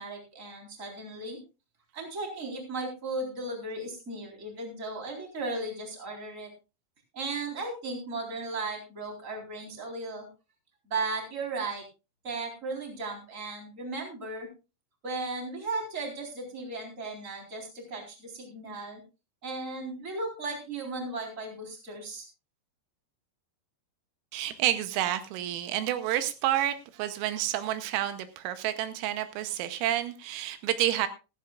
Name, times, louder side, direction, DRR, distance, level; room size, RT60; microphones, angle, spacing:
voice 1, 0.0-1.4 1.9-6.5 7.1-10.3 10.9-11.8 12.2-14.5 15.0-19.0 19.4-22.3, right 3 dB, 15° right, 1 dB, 3.4 m, -36 dB
voice 2, 24.3-31.1, right 12 dB, 85° right, 10 dB, 3.5 m, -29 dB
15.5 x 15.0 x 2.4 m, 0.30 s
omnidirectional pair, 6.0 m